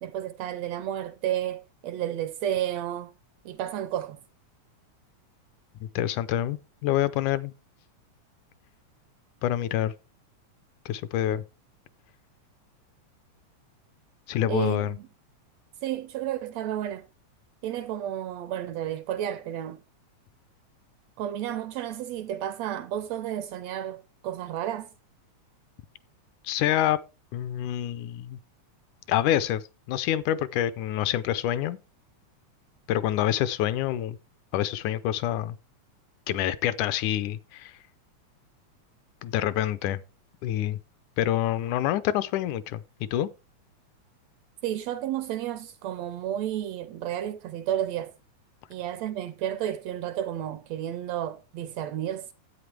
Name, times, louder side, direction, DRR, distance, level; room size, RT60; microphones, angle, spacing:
voice 1, 0.0-3.1 3.4-4.2 14.5-15.1 15.8-17.1 17.6-19.8 21.2-24.9 44.6-48.1 48.7-52.3, right 11 dB, 75° right, 1.6 m, -32 dB
voice 2, 5.8-7.5 9.4-9.9 10.9-11.4 14.3-14.9 26.4-27.0 27.3-28.4 29.1-29.6 29.9-31.8 32.9-34.2 34.5-35.6 36.3-37.7 39.2-40.0 40.4-40.8 41.2-43.3, left 12 dB, 85° left, 2.1 m, -27 dB
11.5 x 8.7 x 3.3 m
omnidirectional pair, 3.5 m